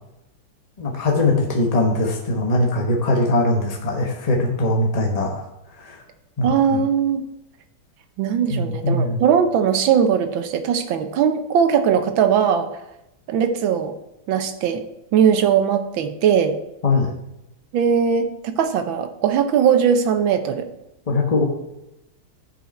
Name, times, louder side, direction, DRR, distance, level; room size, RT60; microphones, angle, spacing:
voice 1, 0.8-5.4 5.8-6.0 6.4-6.8 8.5-9.2 16.8-17.1 21.1-21.4, left 2 dB, 30° left, 0 dB, 0.7 m, -21 dB
voice 2, 6.4-7.2 8.2-12.7 13.3-13.9 14.3-14.8 15.1-16.6 17.7-20.7, right 7 dB, 75° right, 7 dB, 1.5 m, -19 dB
10.0 x 5.8 x 4.2 m, 0.90 s
omnidirectional pair, 2.3 m